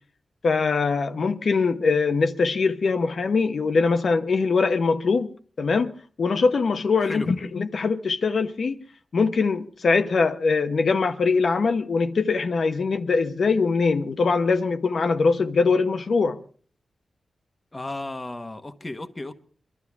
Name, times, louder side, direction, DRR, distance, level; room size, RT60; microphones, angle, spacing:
voice 1, 0.4-5.3 5.6-8.8 9.1-16.4, left 4 dB, 60° left, 1.0 m, -22 dB
voice 2, 17.7-19.3, left 2 dB, 20° left, 1.1 m, -34 dB
23.5 x 13.0 x 3.5 m
wide cardioid pair, 135°, 0 cm